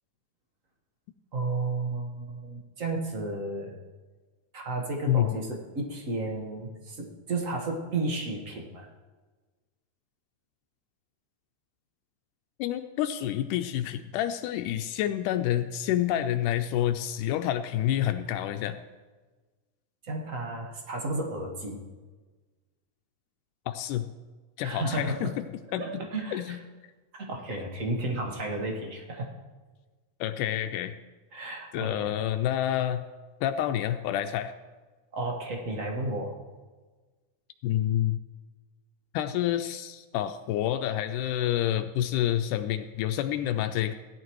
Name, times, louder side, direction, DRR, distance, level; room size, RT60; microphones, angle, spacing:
voice 1, 1.3-3.8 4.5-8.9 20.0-21.8 24.6-25.3 25.8-26.6 27.2-29.3 31.3-32.1 35.1-36.3, right 2 dB, 55° right, 1 dB, 0.9 m, -33 dB
voice 2, 12.6-18.8 23.7-24.1 24.6-25.9 26.3-26.6 30.2-30.9 31.7-33.0 33.4-34.5 37.6-38.2 39.1-43.9, left 11 dB, 85° left, 8 dB, 2.1 m, -28 dB
16.5 x 11.0 x 3.1 m, 1.3 s
omnidirectional pair, 3.6 m